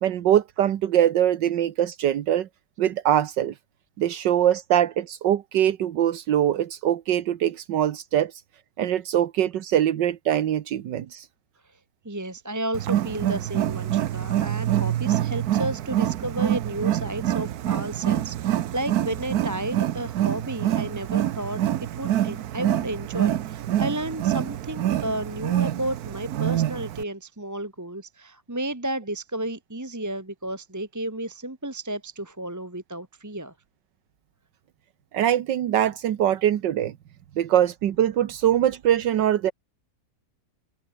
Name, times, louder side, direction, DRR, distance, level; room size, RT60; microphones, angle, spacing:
voice 1, 0.0-2.5 2.8-3.5 4.0-8.4 8.8-11.3 35.1-36.9 37.4-39.5, right 11 dB, 80° right, 1.7 m, -23 dB
voice 2, 12.0-33.5, right 1 dB, 10° right, 1.1 m, -32 dB
Wild animals, 12.7-27.0, right 12 dB, 65° right, 1.2 m, -26 dB
open air
omnidirectional pair, 1.9 m